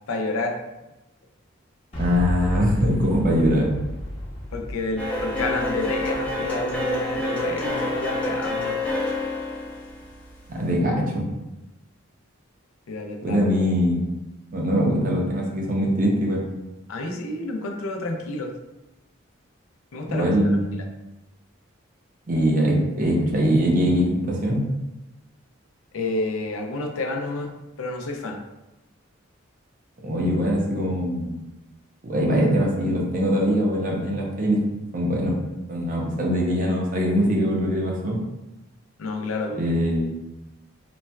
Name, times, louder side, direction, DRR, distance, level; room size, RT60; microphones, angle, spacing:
voice 1, 0.1-0.6 4.5-8.7 12.9-13.4 16.9-18.5 19.9-20.3 25.9-28.4 39.0-39.6, left 2 dB, 85° left, 3 dB, 0.4 m, -29 dB
Boom, 1.9-7.8, left 1 dB, 30° left, 0.8 m, -32 dB
voice 2, 2.0-3.7 10.5-11.2 13.2-14.1 14.5-16.4 20.1-20.8 22.3-24.7 30.0-31.4 32.0-34.6 34.9-35.4 35.7-38.2 39.5-40.1, equal, 40° right, -2 dB, 0.6 m, -22 dB
sound 1, 5.0-10.7, left 2 dB, 5° left, 0.4 m, -28 dB
4.1 x 2.2 x 2.2 m, 0.98 s
head